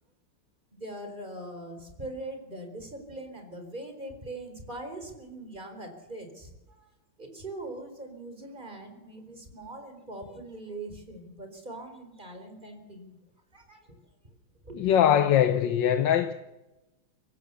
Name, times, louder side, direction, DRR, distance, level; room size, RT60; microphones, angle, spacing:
voice 1, 0.7-6.9 7.2-13.2 13.5-14.0 14.6-14.9, right 1 dB, 20° right, 4.4 m, -42 dB
voice 2, 14.8-16.3, left 10 dB, 65° left, 1.5 m, -22 dB
24.0 x 17.0 x 7.0 m
omnidirectional pair, 2.3 m